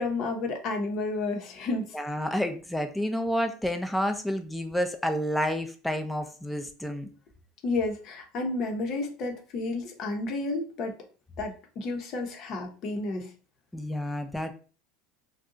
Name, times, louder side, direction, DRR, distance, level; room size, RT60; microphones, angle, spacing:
voice 1, 0.0-2.0 7.6-10.9 11.4-13.3, left 3 dB, 50° left, 3 dB, 0.8 m, -31 dB
voice 2, 1.9-7.1 13.7-14.5, equal, 5° left, 7 dB, 0.5 m, -29 dB
2.6 x 2.2 x 3.8 m, 0.38 s
supercardioid pair, 100°, 0 cm